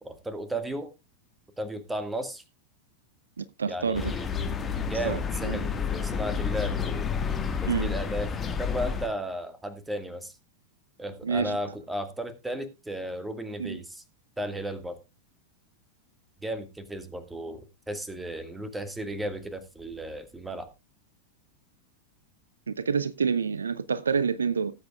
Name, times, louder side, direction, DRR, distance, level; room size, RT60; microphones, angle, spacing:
voice 1, 0.0-0.9 1.6-2.4 3.7-4.3 4.9-7.1 7.6-8.3 8.6-10.3 11.0-14.0 14.4-15.0 16.4-20.7, right 1 dB, 5° right, 1.6 m, -34 dB
voice 2, 3.4-4.1 5.0-5.6 7.7-7.9 11.2-11.6 13.6-13.8 22.7-24.7, right 5 dB, 70° right, 0.4 m, -28 dB
sound 1, 3.9-9.1, left 6 dB, 20° left, 1.5 m, -30 dB
18.0 x 8.2 x 2.3 m
figure-of-eight pair, 90°, 0 cm